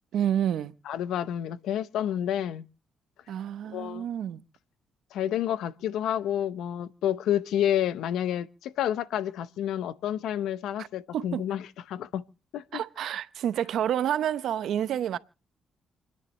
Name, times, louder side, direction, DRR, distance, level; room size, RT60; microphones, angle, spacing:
voice 1, 0.1-0.7 3.3-4.4 10.8-10.9 11.1-11.4 12.7-15.2, right 10 dB, 75° right, 0.7 m, -29 dB
voice 2, 0.9-2.7 3.6-4.1 5.1-12.2 12.5-12.8, left 10 dB, 80° left, 0.7 m, -29 dB
28.5 x 10.0 x 3.2 m
cardioid pair, 90°, 0 cm